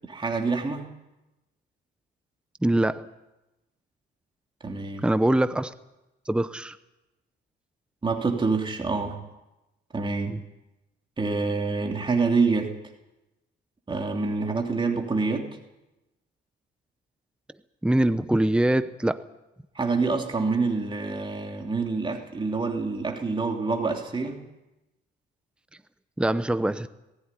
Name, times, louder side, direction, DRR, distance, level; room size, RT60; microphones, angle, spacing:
voice 1, 0.1-0.8 4.6-5.1 8.0-9.2 9.9-10.4 11.2-12.7 13.9-15.5 19.7-24.4, right 4 dB, 25° right, 3.1 m, -26 dB
voice 2, 2.6-3.1 5.0-5.7 6.3-6.8 10.3-10.4 17.8-19.2 26.2-26.9, right 1 dB, 5° right, 0.9 m, -23 dB
19.0 x 16.0 x 10.0 m
cardioid pair, 90°, 20 cm